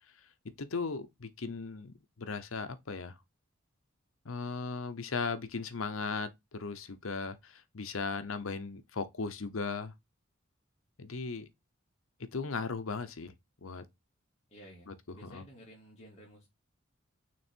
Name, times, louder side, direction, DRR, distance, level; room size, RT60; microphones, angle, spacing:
voice 1, 0.6-3.1 4.2-9.9 11.0-11.5 12.2-13.3 13.6-13.8 14.9-15.0 15.3-15.4, left 4 dB, 75° left, 0.8 m, -37 dB
voice 2, 14.5-16.5, equal, 30° left, 2.2 m, -54 dB
6.2 x 3.4 x 4.5 m
head